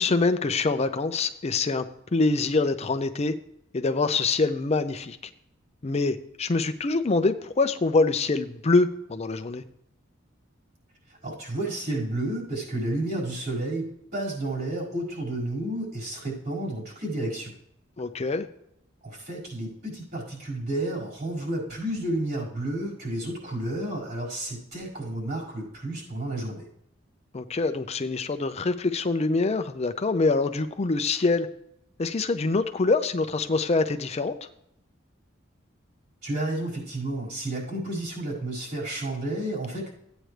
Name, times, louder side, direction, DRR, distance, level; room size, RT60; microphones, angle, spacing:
voice 1, 0.0-1.8 2.1-3.3 3.7-5.2 5.8-9.6 18.0-18.5 27.3-31.5 32.0-34.5, left 3 dB, 35° left, 8 dB, 0.5 m, -25 dB
voice 2, 11.2-17.5 19.0-26.7 36.2-39.9, right 1 dB, 55° right, -5 dB, 5.1 m, -31 dB
14.5 x 9.0 x 3.3 m, 0.78 s
head